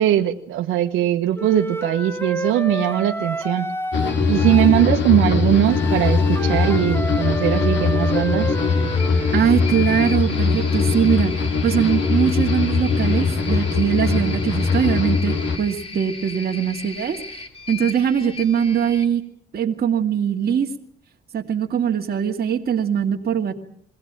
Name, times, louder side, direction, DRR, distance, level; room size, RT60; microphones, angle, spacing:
voice 1, 0.0-3.7 4.3-8.5, right 12 dB, 90° right, 5 dB, 1.2 m, -20 dB
Wind instrument woodwind instrument, 1.3-4.9 5.7-9.4, right 1 dB, 10° left, 1.7 m, -30 dB
sound 1, 3.9-15.6, left 4 dB, 65° left, 3.3 m, -21 dB
sound 2, 8.6-19.1, left 4 dB, 30° left, 3.4 m, -36 dB
voice 2, 9.3-11.4 11.6-19.2 19.5-20.7 21.3-23.5, right 8 dB, 50° right, 2 dB, 2.2 m, -21 dB
22.5 x 16.0 x 8.9 m, 0.67 s
cardioid pair, 90°, 20 cm